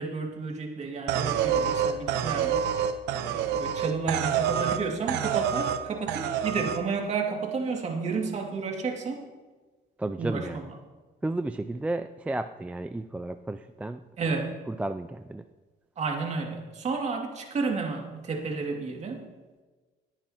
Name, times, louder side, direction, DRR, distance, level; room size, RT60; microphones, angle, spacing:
voice 1, 0.0-2.7 3.1-9.3 10.2-10.6 14.2-14.5 16.0-19.2, right 4 dB, 40° right, 1 dB, 2.3 m, -31 dB
sound 1, 1.1-4.8 5.1-5.8 6.1-6.8, right 9 dB, 90° right, 0.9 m, -27 dB
voice 2, 10.0-10.7 11.2-14.0 14.7-15.4, right 2 dB, 10° right, 9 dB, 0.3 m, -33 dB
20.0 x 9.7 x 2.9 m, 1.3 s
cardioid pair, 110°, 17 cm